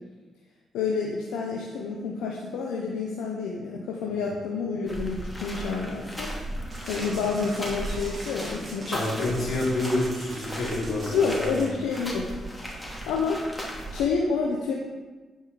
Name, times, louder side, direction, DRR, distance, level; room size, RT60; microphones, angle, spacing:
voice 1, 0.7-6.3 6.9-9.5 11.1-12.3 12.6-13.5 13.9-14.7, left 5 dB, 85° left, -1 dB, 0.9 m, -29 dB
sound 1, 4.9-14.0, equal, 10° left, 2.8 m, -36 dB
sound 2, 6.7-11.7, right 2 dB, 40° right, 3.0 m, -42 dB
voice 2, 8.9-11.7, left 1 dB, 60° left, -3 dB, 2.8 m, -28 dB
9.9 x 5.4 x 4.9 m, 1.3 s
supercardioid pair, 50°, 0 cm